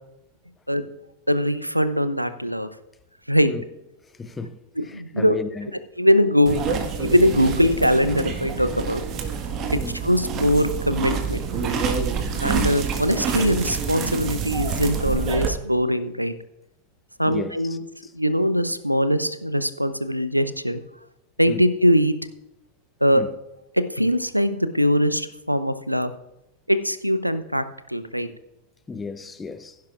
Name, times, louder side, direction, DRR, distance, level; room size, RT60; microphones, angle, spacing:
voice 1, 1.3-2.7 3.3-3.5 4.8-5.4 6.0-9.0 9.7-11.4 12.4-16.3 17.2-17.8 18.1-20.8 21.4-22.1 23.0-23.2 23.9-26.1 26.7-28.3, equal, 90° right, 0.7 m, -21 dB
voice 2, 4.2-5.7 9.7-10.0 12.5-12.7 17.3-17.5 18.0-18.1 21.5-21.6 23.1-23.3 28.9-29.8, left 4 dB, 15° left, 0.7 m, -34 dB
sound 1, 6.5-15.5, right 6 dB, 35° right, 1.5 m, -27 dB
16.0 x 10.5 x 2.5 m
figure-of-eight pair, 90°, 0 cm